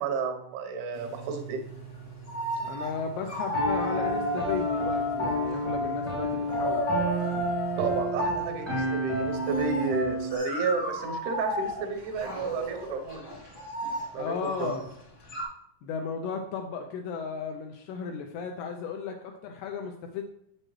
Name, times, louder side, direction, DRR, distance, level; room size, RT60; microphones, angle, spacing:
voice 1, 0.0-1.6 7.8-13.3 14.1-14.8, right 4 dB, 85° right, 5 dB, 3.3 m, -32 dB
sound 1, 0.9-9.9, right 6 dB, 60° left, 0.5 m, -47 dB
sound 2, 1.9-2.0 2.3-3.0 3.3-5.7 6.3-8.1 9.2-15.4, equal, 40° left, 1.1 m, -34 dB
voice 2, 2.6-6.9 14.2-14.9 15.8-20.2, left 5 dB, 80° left, 4 dB, 2.4 m, -35 dB
Piano, 3.5-10.4, equal, 10° right, 0.6 m, -29 dB
7.7 x 7.5 x 3.1 m, 0.76 s
omnidirectional pair, 5.2 m